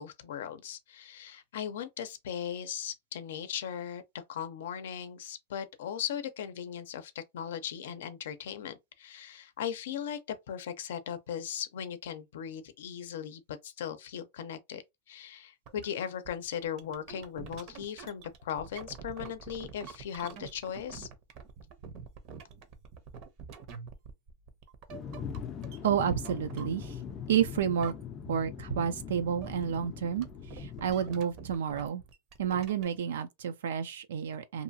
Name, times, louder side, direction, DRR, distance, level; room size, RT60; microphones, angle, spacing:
voice 1, 0.0-10.2 10.5-14.8 15.1-21.1, left 9 dB, 75° left, 0.6 m, -38 dB
sound 1, 15.7-15.9 16.2-27.3 27.6-28.4 28.6-33.0, right 6 dB, 45° right, 0.6 m, -47 dB
sound 2, 24.9-31.2, left 7 dB, 25° left, 0.4 m, -41 dB
voice 2, 25.8-27.0 27.3-27.9 28.3-30.3 30.5-32.0 32.4-34.6, right 8 dB, 85° right, 0.4 m, -30 dB
2.7 x 2.3 x 2.6 m
supercardioid pair, 145°, 0 cm